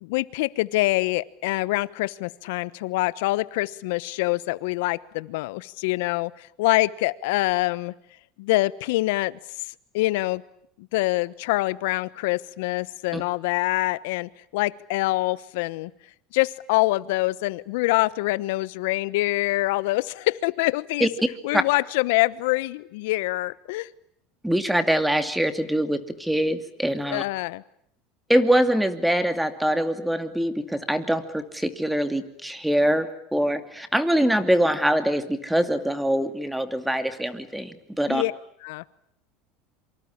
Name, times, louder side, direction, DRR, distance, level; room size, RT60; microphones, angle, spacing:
voice 1, 0.0-7.9 8.4-9.7 9.9-10.4 10.8-15.9 16.3-21.1 21.4-23.9 27.1-27.6 38.1-38.3 38.6-38.8, left 20 dB, 80° left, 18 dB, 1.1 m, -25 dB
voice 2, 24.4-27.2 28.3-38.2, right 1 dB, 5° right, 10 dB, 2.6 m, -23 dB
27.0 x 25.0 x 8.8 m, 0.68 s
supercardioid pair, 120°, 0 cm